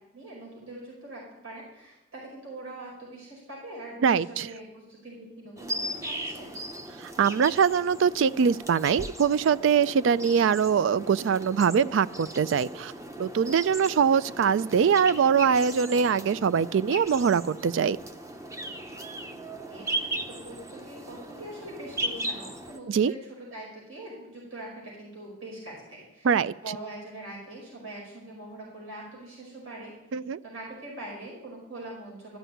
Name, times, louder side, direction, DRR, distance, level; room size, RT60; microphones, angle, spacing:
voice 1, 0.1-6.6 19.7-26.3 26.6-29.9 30.4-32.4, right 1 dB, 80° right, -4 dB, 5.1 m, -43 dB
voice 2, 4.0-4.5 7.0-12.9 13.2-18.0 22.9-23.1 26.2-26.5 30.1-30.4, right 6 dB, 65° right, 18 dB, 0.3 m, -23 dB
sound 1, 5.6-22.8, right 1 dB, 15° right, 0.6 m, -37 dB
13.5 x 6.1 x 9.2 m, 0.94 s
head